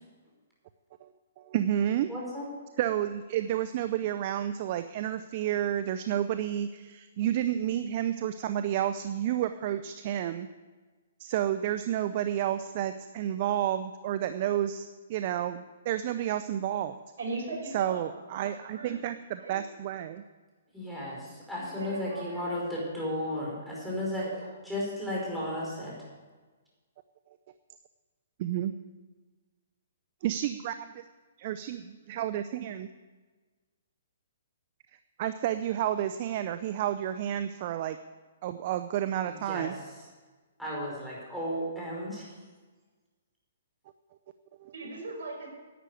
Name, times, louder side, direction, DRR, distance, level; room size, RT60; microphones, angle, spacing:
voice 1, 1.4-2.1 2.8-10.5 11.2-17.0 17.7-20.2 28.4-28.7 30.2-31.0 31.4-32.9 35.2-38.0 38.4-39.7 44.6-44.7, right 11 dB, 45° right, 11 dB, 0.6 m, -30 dB
voice 2, 2.1-2.5 20.7-24.3 24.6-26.0 39.3-39.7 40.6-42.3, left 1 dB, ahead, -6 dB, 5.0 m, -34 dB
voice 3, 17.2-19.1 19.4-19.6 21.2-22.6 23.2-23.5 24.2-24.5 44.7-45.5, right 3 dB, 70° right, 0 dB, 5.3 m, -40 dB
11.0 x 9.1 x 8.2 m, 1.3 s
hypercardioid pair, 145°, 0 cm